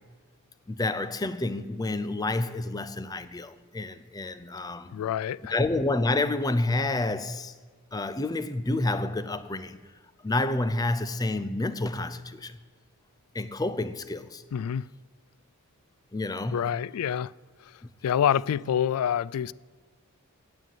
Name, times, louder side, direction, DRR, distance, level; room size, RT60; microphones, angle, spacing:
voice 1, 0.7-5.0 5.5-7.5 7.9-9.8 10.2-12.6 13.3-14.4 16.1-16.8 17.8-17.9, left 2 dB, 15° left, 0.5 m, -29 dB
voice 2, 4.9-5.5 14.5-14.9 16.5-17.3 18.0-19.5, left 9 dB, 80° left, 0.3 m, -27 dB
9.1 x 7.6 x 9.1 m
head